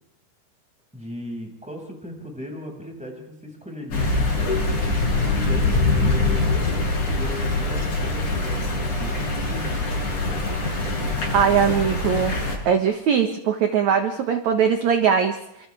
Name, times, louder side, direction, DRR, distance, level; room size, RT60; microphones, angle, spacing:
voice 1, 0.9-4.8 5.3-9.2 9.5-10.5 10.8-11.3, left 1 dB, ahead, 0 dB, 5.9 m, -38 dB
sound 1, 3.9-12.6, left 2 dB, 45° left, 8.1 m, -23 dB
voice 2, 11.3-12.4 12.7-15.7, right 7 dB, 60° right, 5 dB, 2.1 m, -21 dB
29.5 x 27.5 x 3.6 m, 0.85 s
omnidirectional pair, 5.0 m